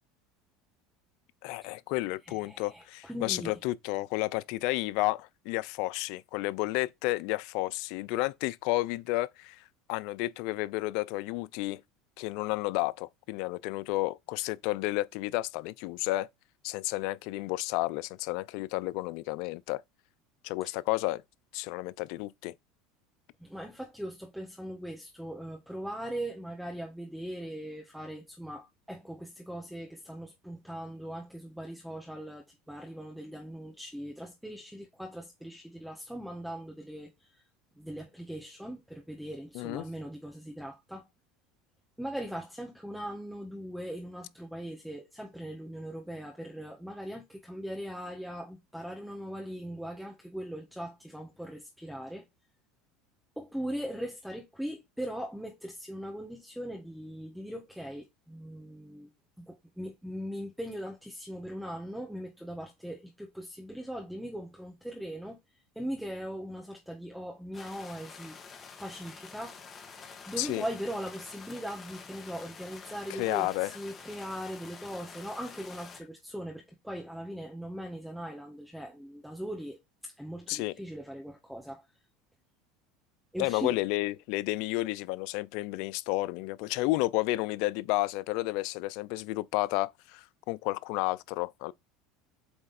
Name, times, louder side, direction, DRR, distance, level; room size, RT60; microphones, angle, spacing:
voice 1, 1.4-9.6 9.9-11.8 12.2-16.3 16.6-19.8 20.4-21.2 21.5-22.5 39.5-39.8 70.4-70.6 73.2-73.7 80.5-80.7 83.4-91.7, left 19 dB, 70° left, 0.4 m, -31 dB
voice 2, 2.2-3.6 20.6-20.7 23.4-37.4 37.8-41.1 42.0-52.2 53.4-59.1 59.4-65.4 65.7-69.6 70.3-81.8 83.3-83.8, equal, ahead, 1.3 m, -40 dB
sound 1, 67.5-76.0, left 5 dB, 30° left, 1.8 m, -48 dB
7.8 x 3.3 x 4.2 m
supercardioid pair, 100°, 0 cm